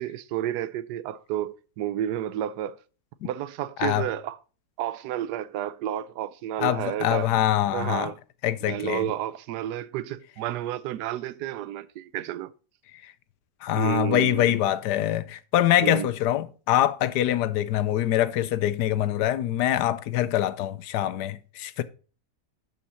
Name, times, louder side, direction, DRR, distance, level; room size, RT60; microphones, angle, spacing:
voice 1, 0.0-2.8 3.2-4.4 4.8-7.3 7.7-8.2 8.7-12.5 13.7-14.6 15.8-16.1, right 12 dB, 80° right, 1.2 m, -31 dB
voice 2, 6.6-8.1 8.4-9.1 13.6-21.8, left 12 dB, 85° left, 1.2 m, -24 dB
12.0 x 5.5 x 4.2 m
omnidirectional pair, 1.7 m